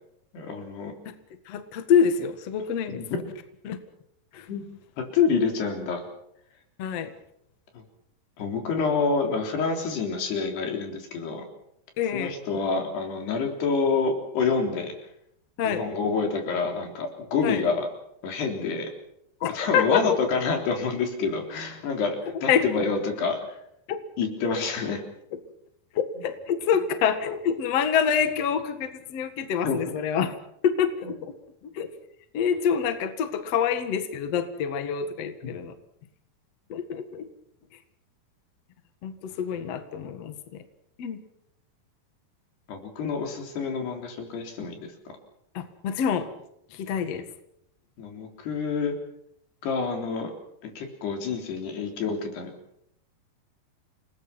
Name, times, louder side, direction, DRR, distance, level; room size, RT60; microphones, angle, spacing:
voice 1, 0.3-0.9 2.9-3.1 4.5-4.7 5.0-6.0 7.7-7.8 8.4-11.5 12.1-14.9 15.6-17.9 18.2-18.9 19.5-23.6 24.2-25.0 29.6-29.8 35.4-35.6 42.7-44.9 48.0-49.0 49.6-50.3 50.6-52.5, left 5 dB, 75° left, 3 dB, 5.8 m, -27 dB
voice 2, 1.5-3.0 3.6-3.8 4.3-4.5 6.8-7.1 12.0-12.3 15.6-15.8 17.4-17.6 19.4-20.2 22.5-22.6 23.9-24.0 25.9-30.3 30.6-31.3 31.6-31.9 32.3-35.7 36.7-37.3 39.0-40.6 41.0-41.2 45.5-46.3 46.7-47.3, left 7 dB, 50° left, 9 dB, 2.2 m, -26 dB
29.0 x 20.0 x 6.0 m, 0.75 s
omnidirectional pair, 4.7 m